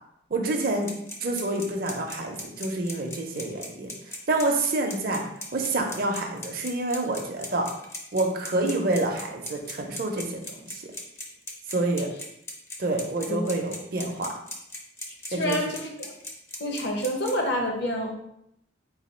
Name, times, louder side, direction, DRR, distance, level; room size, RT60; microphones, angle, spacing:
voice 1, 0.3-0.9 1.2-5.2 5.5-7.7 8.1-10.4 10.7-10.9 11.7-12.1 12.8-14.3 15.3-15.6, right 2 dB, 50° right, 3 dB, 0.6 m, -27 dB
sound 1, 0.6-17.3, left 2 dB, 15° left, 0.5 m, -38 dB
voice 2, 15.3-16.1 16.6-18.1, equal, 60° left, 1 dB, 0.8 m, -28 dB
4.1 x 2.3 x 4.3 m, 0.77 s
head